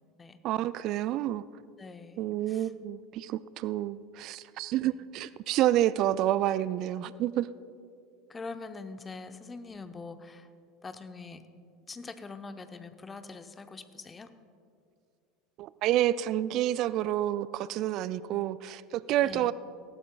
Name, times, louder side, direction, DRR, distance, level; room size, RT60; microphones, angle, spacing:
voice 1, 0.4-1.4 2.2-7.5 15.6-19.5, right 13 dB, 50° right, 18 dB, 0.3 m, -29 dB
voice 2, 1.8-2.2 2.5-2.7 4.8-4.9 8.3-10.5 10.8-11.4 11.9-14.3 19.2-19.5, left 4 dB, 20° left, 10 dB, 0.8 m, -43 dB
19.0 x 16.5 x 2.4 m, 2.5 s
figure-of-eight pair, 75°, 0 cm